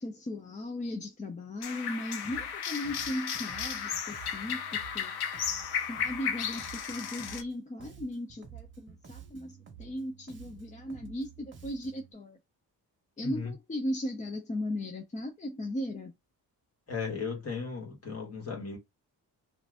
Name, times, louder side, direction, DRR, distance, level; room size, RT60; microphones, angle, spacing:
voice 1, 0.0-4.6 4.9-5.1 5.9-12.4 13.2-16.1, left 1 dB, 20° left, 0.5 m, -37 dB
sound 1, 1.6-7.4, left 8 dB, 85° left, 0.6 m, -34 dB
Bass guitar, 2.2-2.6 2.8-7.5 7.8-12.1, right 8 dB, 30° right, 0.9 m, -51 dB
voice 2, 13.2-13.5 16.9-18.8, left 5 dB, 40° left, 1.4 m, -36 dB
2.5 x 2.5 x 3.3 m
cardioid pair, 130°, 38 cm